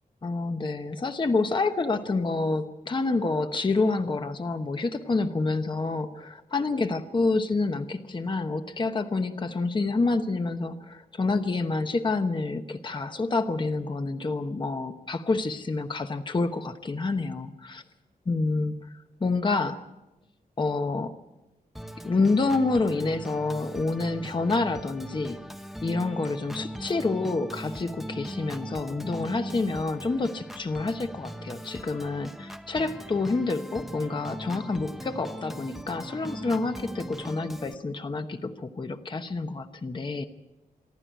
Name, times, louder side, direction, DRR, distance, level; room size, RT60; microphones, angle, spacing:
voice 1, 0.2-17.8 18.3-18.7 19.2-19.9 20.6-21.1 22.0-25.4 25.8-40.3, left 3 dB, 30° left, 8 dB, 1.0 m, -28 dB
Organ, 21.8-37.8, equal, ahead, 1.0 m, -39 dB
26.5 x 12.0 x 9.2 m, 1.0 s
wide cardioid pair, 140°, 15 cm